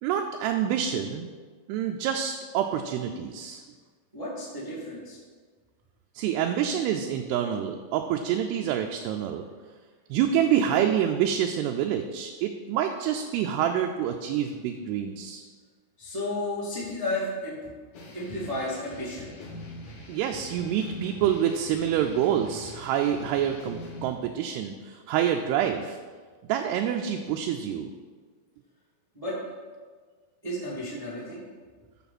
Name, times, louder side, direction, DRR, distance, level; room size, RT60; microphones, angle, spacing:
voice 1, 0.0-1.3 1.7-3.6 6.2-9.4 10.1-15.4 20.1-26.0 26.5-27.9, right 9 dB, 80° right, 4 dB, 2.5 m, -27 dB
voice 2, 4.1-5.2 16.0-17.7 18.1-19.3 29.1-29.3 30.4-31.4, left 1 dB, 30° right, -7 dB, 0.6 m, -33 dB
sound 1, 17.9-24.1, left 2 dB, 65° left, 1.8 m, -43 dB
12.5 x 6.6 x 4.2 m, 1.5 s
omnidirectional pair, 5.0 m